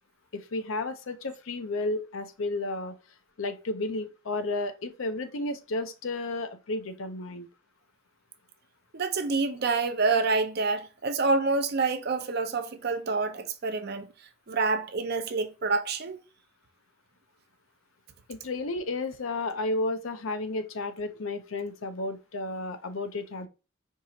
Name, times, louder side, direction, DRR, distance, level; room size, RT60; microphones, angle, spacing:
voice 1, 0.3-2.9 3.4-7.5 18.3-23.5, left 2 dB, 75° left, 0.6 m, -32 dB
voice 2, 8.9-14.1 14.5-16.2, right 3 dB, 50° right, 0.6 m, -27 dB
4.6 x 2.9 x 2.7 m
head